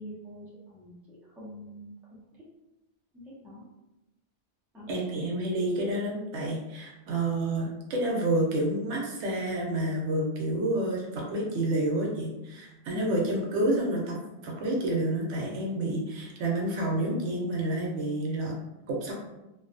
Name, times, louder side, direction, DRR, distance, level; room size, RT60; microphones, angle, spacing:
voice 1, 0.0-1.9 3.1-3.6 4.7-4.9 12.9-13.4, equal, ahead, -8 dB, 0.5 m, -44 dB
voice 2, 4.9-14.2 14.4-18.5 18.9-19.1, right 1 dB, 85° right, -1 dB, 0.9 m, -29 dB
2.4 x 2.3 x 2.4 m, 0.97 s
omnidirectional pair, 1.2 m